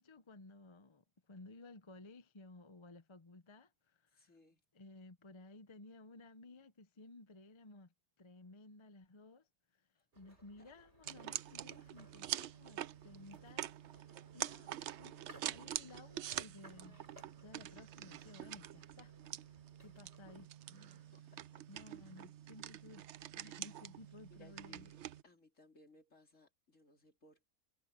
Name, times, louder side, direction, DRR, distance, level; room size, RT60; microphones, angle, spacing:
voice 1, 0.0-4.3 4.7-9.5 9.7-9.9 10.1-17.0 17.4-19.1 19.4-21.1 21.7-24.9, left 2 dB, 30° left, 0.6 m, -57 dB
voice 2, 4.1-4.6 10.0-10.7 21.1-21.6 24.3-25.0 25.2-27.4, left 2 dB, 50° left, 3.8 m, -65 dB
sound 1, 10.1-20.5, right 2 dB, 40° right, 4.0 m, -63 dB
sound 2, 11.0-25.2, right 11 dB, 65° right, 0.7 m, -46 dB
omnidirectional pair, 1.7 m